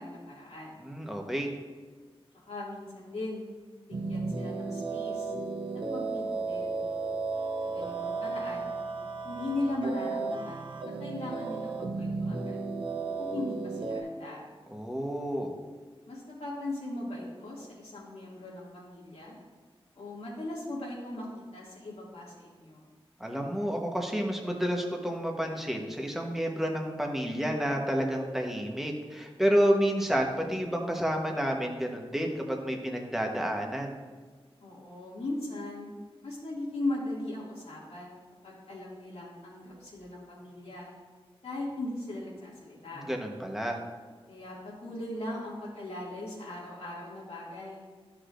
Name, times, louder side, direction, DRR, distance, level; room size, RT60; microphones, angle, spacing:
voice 1, 0.0-0.8 2.3-3.5 3.9-5.3 5.9-6.8 7.6-8.7 9.2-12.6 13.2-14.4 16.1-19.4 20.0-22.9 34.6-35.9 36.2-38.2 38.4-40.9 41.4-43.1 44.3-47.8, left 2 dB, 85° left, -5 dB, 2.3 m, -38 dB
voice 2, 0.8-1.5 14.7-15.5 23.2-34.0 42.9-43.8, equal, 5° right, 1 dB, 1.1 m, -30 dB
sound 1, 3.9-14.0, right 3 dB, 55° right, 0.8 m, -34 dB
13.0 x 4.9 x 2.6 m, 1.5 s
wide cardioid pair, 100°, 10 cm